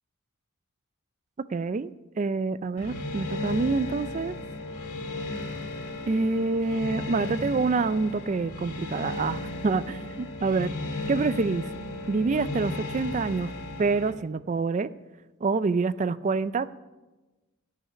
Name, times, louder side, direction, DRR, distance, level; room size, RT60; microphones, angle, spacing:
voice 1, 1.5-1.9 2.2-4.3 6.1-10.7 11.1-11.7 12.1-13.5 13.8-14.9 15.4-16.8, right 4 dB, 35° right, 14 dB, 0.3 m, -27 dB
sound 1, 2.8-14.1, left 2 dB, 85° left, 1.8 m, -35 dB
14.0 x 5.7 x 9.6 m, 1.1 s
head